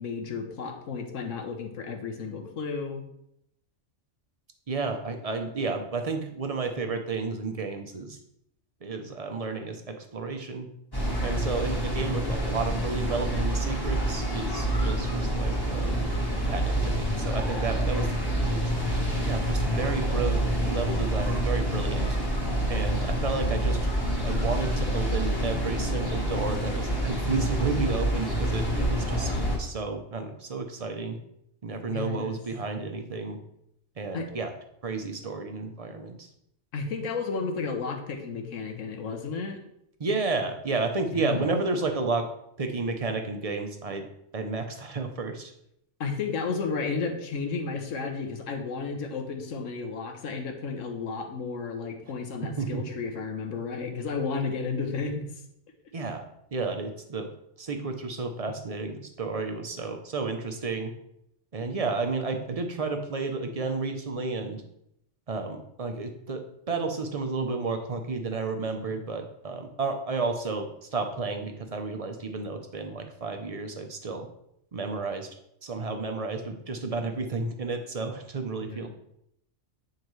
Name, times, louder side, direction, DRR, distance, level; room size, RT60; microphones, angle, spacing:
voice 1, 0.0-3.0 31.9-32.3 34.1-34.3 36.7-39.6 41.1-41.5 46.0-55.2 78.6-78.9, left 4 dB, 85° left, 4 dB, 1.3 m, -32 dB
voice 2, 4.7-8.2 8.8-10.7 11.2-16.1 16.5-18.7 19.2-22.2 22.7-23.8 24.2-29.3 29.6-31.2 31.6-33.4 34.0-34.5 34.8-36.3 40.0-42.3 42.6-44.1 44.3-45.5 52.6-52.9 55.9-56.2 56.5-57.3 57.6-60.9 61.5-64.6 65.3-74.3 74.7-75.3 75.6-78.9, right 3 dB, 40° right, 6 dB, 0.6 m, -32 dB
sound 1, 10.9-29.6, right 1 dB, 20° left, 1.4 m, -27 dB
9.0 x 4.7 x 3.2 m, 0.76 s
omnidirectional pair, 1.3 m